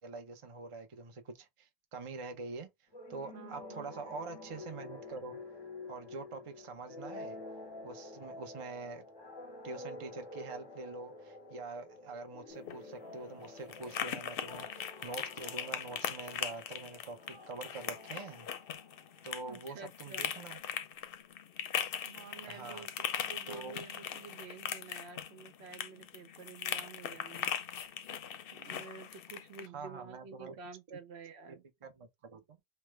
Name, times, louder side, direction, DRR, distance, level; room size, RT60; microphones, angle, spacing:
voice 1, 0.0-2.7 3.1-5.4 5.9-7.4 7.8-9.0 9.6-17.2 17.5-18.5 19.2-20.6 22.5-22.9 23.5-23.7 29.7-30.6 31.5-31.6 31.8-32.6, right 3 dB, 35° right, 0.6 m, -45 dB
sound 1, 2.9-19.3, left 2 dB, 30° left, 0.6 m, -49 dB
voice 2, 3.3-3.9 19.4-20.3 22.0-27.5 28.5-31.6, right 5 dB, 75° right, 1.0 m, -50 dB
sound 2, 12.5-29.7, left 8 dB, 65° left, 0.7 m, -40 dB
3.3 x 2.1 x 3.2 m
omnidirectional pair, 1.1 m